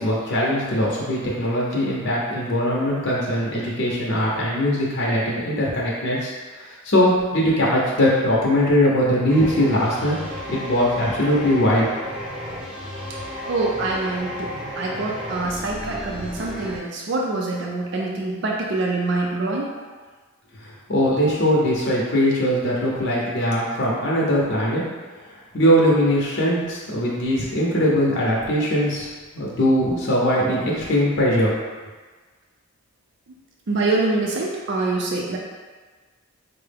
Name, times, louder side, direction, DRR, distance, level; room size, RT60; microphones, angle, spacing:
voice 1, 0.0-10.2 10.5-11.9 20.9-24.8 25.5-29.1 29.3-31.6, equal, 60° left, -5 dB, 0.6 m, -21 dB
sound 1, 9.3-16.8, equal, 5° right, 0.6 m, -33 dB
voice 2, 13.5-14.5 14.8-19.8 33.7-35.4, right 2 dB, 60° right, -1 dB, 0.4 m, -25 dB
4.5 x 2.0 x 3.3 m, 1.4 s
head